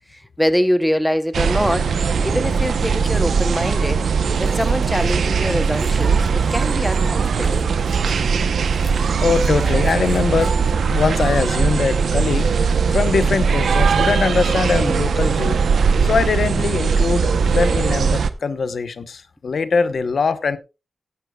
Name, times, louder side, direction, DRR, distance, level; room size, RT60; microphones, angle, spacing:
voice 1, 0.1-4.0 4.4-7.7 18.0-18.2, equal, 5° left, 0.9 m, -24 dB
sound 1, 1.3-18.3, right 5 dB, 90° right, 0.9 m, -19 dB
sound 2, 4.3-10.8, right 1 dB, 15° right, 5.4 m, -41 dB
voice 2, 9.2-10.5 10.9-12.5 12.9-15.6 16.0-20.6, left 5 dB, 70° left, 1.0 m, -21 dB
17.0 x 11.5 x 2.4 m
wide cardioid pair, 85°, 0 cm